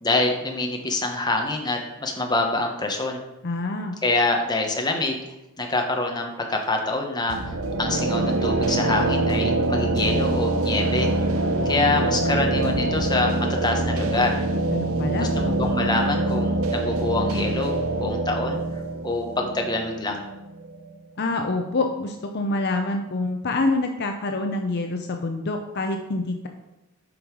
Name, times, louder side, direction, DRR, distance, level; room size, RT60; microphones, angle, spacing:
voice 1, 0.0-3.2 4.0-11.1 11.6-14.4 15.2-18.6 19.0-20.3, left 2 dB, 20° left, 2 dB, 1.1 m, -26 dB
voice 2, 3.4-4.0 14.7-15.3 21.2-26.5, left 2 dB, 50° left, 4 dB, 0.6 m, -26 dB
sound 1, 7.3-21.0, right 2 dB, 70° right, 0.8 m, -24 dB
8.6 x 5.4 x 4.7 m, 0.96 s
head